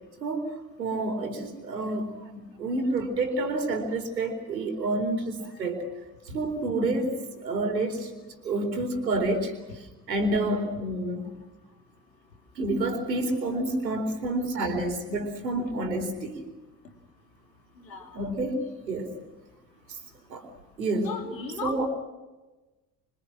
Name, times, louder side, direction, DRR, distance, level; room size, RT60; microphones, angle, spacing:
voice 1, 0.2-5.8 6.3-8.1 8.4-9.5 10.1-11.3 12.6-16.4 18.1-18.6 18.9-19.1 19.9-20.0 20.3-20.5 20.8-21.1 21.6-21.9, right 2 dB, 80° right, 7 dB, 4.3 m, -29 dB
voice 2, 17.8-18.3 21.0-21.9, left 4 dB, 85° left, 3 dB, 3.9 m, -36 dB
27.5 x 25.0 x 6.2 m, 1.1 s
figure-of-eight pair, 55°, 49 cm